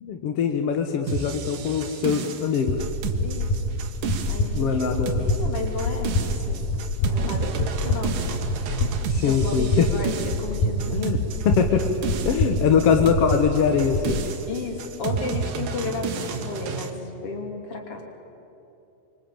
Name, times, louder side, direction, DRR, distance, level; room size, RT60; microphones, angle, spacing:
voice 1, 0.0-2.8 4.5-5.3 9.2-9.9 10.9-11.2 11.5-11.8 12.3-14.2, left 7 dB, 60° left, 6 dB, 1.8 m, -22 dB
sound 1, 1.1-16.9, right 6 dB, 75° right, 3.1 m, -31 dB
sound 2, 2.7-14.1, left 2 dB, 90° left, 3.7 m, -27 dB
voice 2, 3.2-3.6 4.3-4.9 5.1-6.7 7.0-8.2 8.7-11.0 14.5-18.0, left 3 dB, 45° left, 3 dB, 3.7 m, -33 dB
25.0 x 24.0 x 8.9 m, 3.0 s
omnidirectional pair, 4.0 m